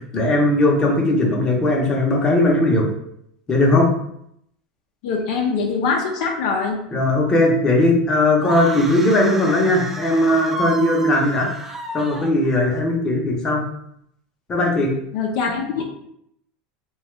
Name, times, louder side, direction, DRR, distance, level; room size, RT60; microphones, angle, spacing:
voice 1, 0.1-2.9 3.5-3.9 6.9-13.6 14.5-14.9, left 1 dB, 20° left, -1 dB, 0.7 m, -18 dB
voice 2, 5.0-6.8 15.1-15.8, left 5 dB, 70° left, 1 dB, 0.5 m, -23 dB
sound 1, 8.4-12.8, right 2 dB, 10° right, 0.3 m, -32 dB
2.8 x 2.3 x 3.1 m, 0.72 s
supercardioid pair, 135°, 3 cm